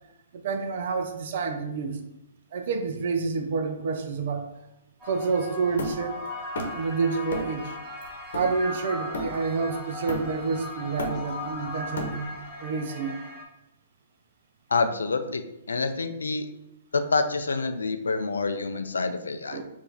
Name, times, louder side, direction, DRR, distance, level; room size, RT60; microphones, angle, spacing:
voice 1, 0.3-2.0 2.5-4.5 5.0-6.2 6.7-7.8 8.3-12.3 12.6-13.2 19.5-19.6, right 4 dB, 60° right, 5 dB, 0.5 m, -28 dB
sound 1, 5.0-13.4, left 2 dB, 25° right, 1.4 m, -38 dB
Hammer, 5.8-6.9 7.3-7.6 8.0-9.6 10.1-10.5 10.8-12.5, left 1 dB, 70° left, 0.9 m, -34 dB
voice 2, 14.7-15.4 15.7-16.5 16.9-19.6, left 4 dB, 85° left, 9 dB, 0.4 m, -27 dB
4.7 x 2.7 x 3.3 m, 0.88 s
hypercardioid pair, 130°, 0 cm